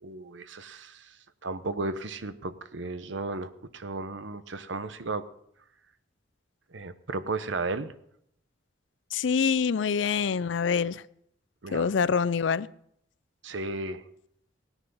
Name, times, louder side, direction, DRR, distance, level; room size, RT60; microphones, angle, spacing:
voice 1, 0.0-1.1 1.4-5.3 6.7-7.9 11.6-11.9 13.4-14.0, right 3 dB, 70° right, 0.9 m, -34 dB
voice 2, 9.1-11.0 11.7-12.7, left 6 dB, 70° left, 0.4 m, -25 dB
17.5 x 9.9 x 5.5 m
head